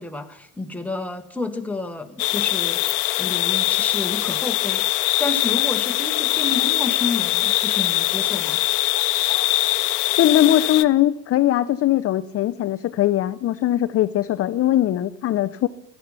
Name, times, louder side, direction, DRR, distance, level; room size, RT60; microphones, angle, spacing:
voice 1, 0.0-2.8 3.2-4.9 5.2-8.6, left 3 dB, 5° left, 5 dB, 1.5 m, -30 dB
sound 1, 2.2-10.8, left 19 dB, 70° left, 0.9 m, -22 dB
voice 2, 10.2-15.7, left 13 dB, 30° left, 12 dB, 0.6 m, -20 dB
15.5 x 13.5 x 5.7 m, 0.86 s
hypercardioid pair, 80°, 48 cm